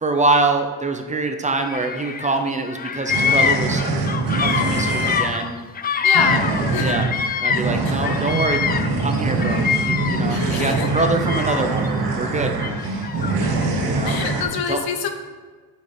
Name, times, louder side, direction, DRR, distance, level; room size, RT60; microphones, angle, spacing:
voice 1, 0.0-3.8 4.4-5.6 6.2-6.5 6.8-7.1 7.4-8.7 9.0-12.8 13.8-14.2 14.7-14.8, right 3 dB, 20° right, 5 dB, 0.6 m, -24 dB
Bird vocalization bird call bird song, 1.6-2.4 2.7-7.7 8.0-10.4 10.9-11.9 12.6-13.7, left 6 dB, 25° left, 0.4 m, -24 dB
sound 1, 3.1-5.2 6.1-14.4, right 3 dB, 75° right, 1.5 m, -23 dB
voice 2, 6.0-6.4 6.7-6.9 7.8-8.0 10.3-10.9 14.0-15.1, left 6 dB, 75° left, 7 dB, 1.0 m, -26 dB
10.0 x 5.2 x 4.4 m, 1.5 s
cardioid pair, 120°, 37 cm